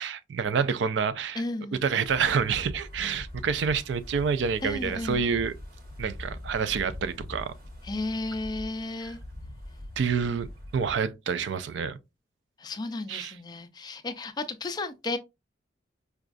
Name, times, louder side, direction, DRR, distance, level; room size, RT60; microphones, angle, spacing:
voice 1, 0.0-1.4 1.8-5.5 6.0-7.5 9.0-9.1 10.0-10.5 10.7-12.0 13.1-13.4, right 6 dB, 70° right, 0.4 m, -28 dB
voice 2, 1.4-1.8 4.6-5.2 7.8-9.2 12.6-15.2, left 2 dB, 20° left, 0.3 m, -33 dB
Wind, 1.8-11.0, left 1 dB, 50° right, 1.2 m, -42 dB
4.9 x 2.3 x 2.5 m
head